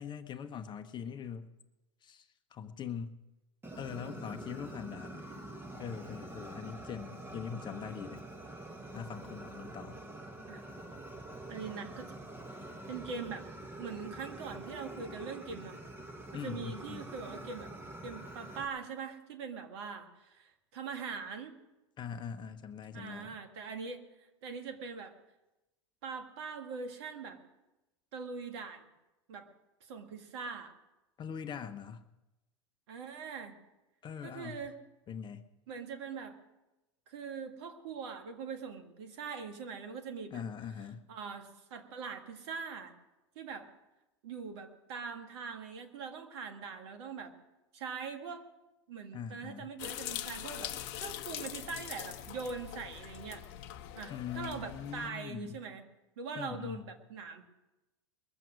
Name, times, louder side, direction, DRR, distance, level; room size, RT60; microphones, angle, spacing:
voice 1, 0.0-1.5 2.0-3.2 3.8-5.2 5.8-8.2 8.9-10.0 16.3-17.1 22.0-23.3 31.2-32.0 34.0-34.7 35.1-35.5 40.3-41.1 49.1-49.7 54.1-55.6 56.4-56.9, left 7 dB, 30° left, 9 dB, 1.0 m, -42 dB
Fire, 3.6-18.7, right 2 dB, 15° right, 1.7 m, -46 dB
voice 2, 11.5-12.1 12.9-13.5 13.8-15.8 16.3-17.7 18.0-21.6 22.9-25.1 26.0-27.4 28.1-28.8 29.3-29.5 29.9-30.7 32.9-33.5 34.2-34.8 35.7-36.4 37.1-40.4 41.1-42.9 43.3-43.7 44.2-47.3 47.7-48.4 48.9-53.4 54.0-55.8 56.2-57.4, right 5 dB, 65° right, 6 dB, 1.8 m, -42 dB
sound 1, 49.8-55.1, left 12 dB, 55° left, 0.8 m, -42 dB
21.5 x 7.7 x 6.4 m, 0.99 s
hypercardioid pair, 90°, 15 cm